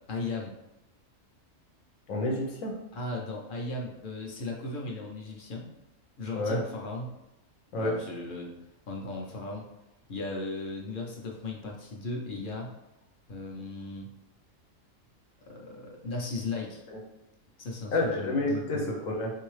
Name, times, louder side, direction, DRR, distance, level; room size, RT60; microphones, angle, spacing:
voice 1, 0.1-0.5 2.9-5.7 6.2-7.1 7.7-8.5 8.9-9.6 10.1-12.7 13.3-14.1 15.5-16.8 17.6-18.8, left 2 dB, 50° left, -1 dB, 0.7 m, -36 dB
voice 2, 2.1-2.7 6.4-6.6 7.7-7.9 16.9-17.0 17.9-19.3, left 2 dB, 85° left, 1 dB, 1.2 m, -29 dB
3.5 x 2.7 x 3.1 m, 0.93 s
omnidirectional pair, 1.4 m